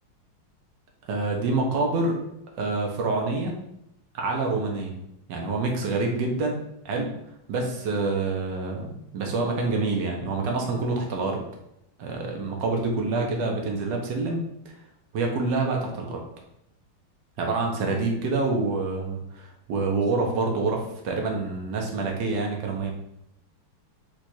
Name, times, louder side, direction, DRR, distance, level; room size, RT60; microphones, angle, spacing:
voice 1, 1.0-2.2 2.6-3.6 4.1-5.0 5.3-7.1 7.5-11.4 12.0-14.7 15.1-16.2 17.4-22.9, right 3 dB, 65° right, 1 dB, 1.4 m, -27 dB
4.7 x 2.5 x 4.2 m, 0.82 s
omnidirectional pair, 2.4 m